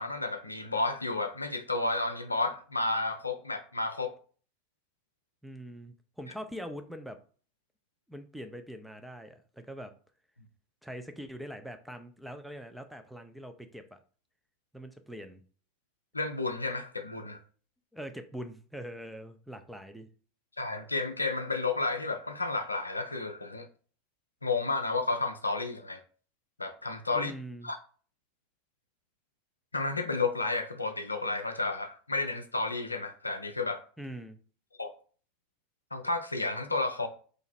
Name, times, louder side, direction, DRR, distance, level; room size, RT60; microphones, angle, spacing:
voice 1, 0.0-4.1 16.1-17.4 20.6-23.7 24.4-26.0 26.6-27.3 27.6-27.8 29.7-33.8 34.8-34.9 35.9-37.1, left 3 dB, 85° left, 0.4 m, -31 dB
voice 2, 5.4-7.2 8.1-9.9 10.8-14.0 14.7-15.4 17.9-20.1 27.1-27.7 34.0-34.4, equal, ahead, 0.5 m, -43 dB
2.9 x 2.5 x 4.2 m
figure-of-eight pair, 80°, 0 cm